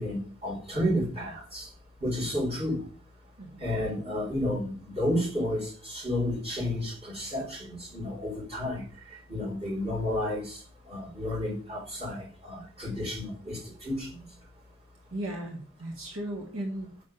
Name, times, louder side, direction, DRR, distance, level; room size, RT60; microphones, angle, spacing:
voice 1, 0.0-1.7 2.0-2.8 3.6-8.8 9.1-10.6 10.9-14.3, left 1 dB, 25° right, -4 dB, 3.9 m, -31 dB
voice 2, 15.1-17.0, right 1 dB, 65° right, 1 dB, 1.5 m, -36 dB
6.3 x 5.4 x 7.1 m, 0.42 s
head